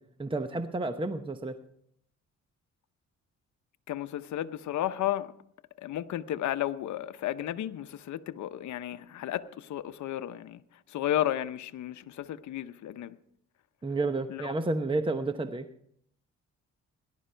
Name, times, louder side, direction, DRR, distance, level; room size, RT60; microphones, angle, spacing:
voice 1, 0.2-1.6 13.8-15.7, right 2 dB, 15° right, 0.9 m, -30 dB
voice 2, 3.9-5.3 5.8-10.6 10.9-13.2 14.3-14.5, left 12 dB, 70° left, 0.8 m, -33 dB
18.0 x 11.5 x 4.5 m
cardioid pair, 90°, 30 cm